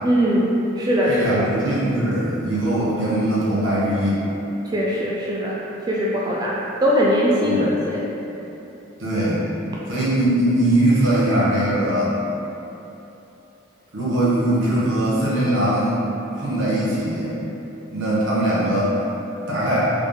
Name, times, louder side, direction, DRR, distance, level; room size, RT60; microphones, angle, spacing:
voice 1, 0.0-1.5 4.6-5.6 5.9-8.0, equal, 20° right, -5 dB, 0.4 m, -21 dB
voice 2, 1.0-4.2 7.4-7.7 9.0-9.4 9.9-12.1 13.9-16.0 16.4-17.4 17.9-19.0 19.5-19.9, right 1 dB, 80° right, -8 dB, 1.3 m, -21 dB
3.8 x 3.5 x 3.6 m, 3.0 s
head